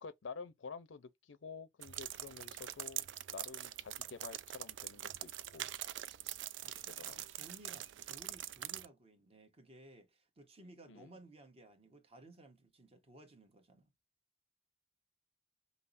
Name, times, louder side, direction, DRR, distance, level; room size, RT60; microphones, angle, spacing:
voice 1, 0.0-5.7 6.8-7.3 10.6-11.2, left 4 dB, 90° left, 0.5 m, -50 dB
sound 1, 1.8-8.9, right 12 dB, 75° right, 0.4 m, -44 dB
voice 2, 6.6-13.9, right 1 dB, 35° right, 1.0 m, -58 dB
5.4 x 2.0 x 2.5 m
head